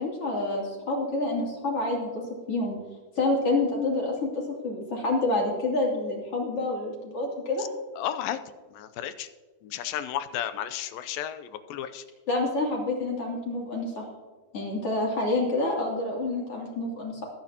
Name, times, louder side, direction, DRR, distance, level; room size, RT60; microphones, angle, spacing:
voice 1, 0.0-2.2 2.5-2.8 3.2-7.7 12.3-14.0 14.5-17.2, left 2 dB, 40° left, -2 dB, 3.5 m, -28 dB
voice 2, 8.0-8.4 8.7-9.3 9.6-12.0, left 11 dB, 80° left, 11 dB, 2.3 m, -33 dB
21.5 x 9.8 x 2.9 m, 1.4 s
omnidirectional pair, 4.3 m